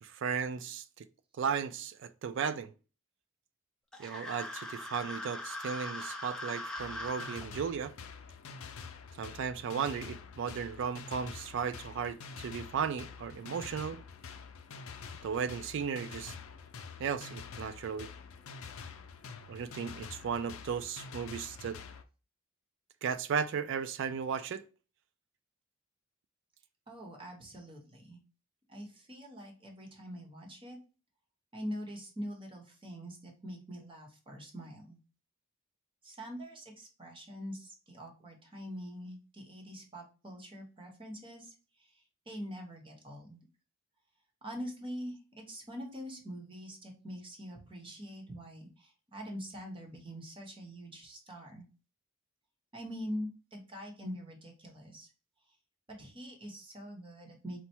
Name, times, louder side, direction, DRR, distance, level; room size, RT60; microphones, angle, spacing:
voice 1, 0.0-1.1 1.4-2.7 4.0-7.9 9.2-14.0 15.2-16.3 17.0-18.1 19.5-21.8 23.0-24.6, right 6 dB, 60° right, 0.3 m, -35 dB
sound 1, 3.9-7.4, left 1 dB, 5° left, 0.5 m, -41 dB
sound 2, 6.8-22.0, left 5 dB, 80° left, 0.5 m, -47 dB
voice 2, 26.9-28.2 28.7-30.8 31.5-35.0 36.0-43.4 44.4-51.6 52.7-55.1 55.9-57.6, equal, 25° right, 0.9 m, -44 dB
4.4 x 2.1 x 4.3 m
head